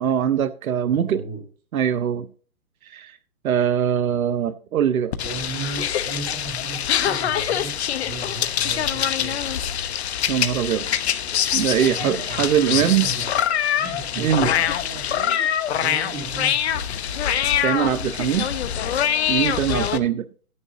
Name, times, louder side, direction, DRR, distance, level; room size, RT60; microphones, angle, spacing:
voice 1, 0.0-1.2 1.7-2.3 2.8-3.2 3.4-5.1 10.3-10.9 11.5-13.1 13.8-14.5 17.6-18.5 19.3-20.2, right 9 dB, 75° right, 0.9 m, -22 dB
voice 2, 0.8-1.4 5.2-7.7 8.0-9.6 11.8-13.3 13.8-15.3 15.7-16.8 19.5-20.0, right 4 dB, 20° right, 3.4 m, -36 dB
sound 1, 5.1-20.0, left 9 dB, 50° left, 1.0 m, -24 dB
14.0 x 9.8 x 2.8 m
hypercardioid pair, 155°, 43 cm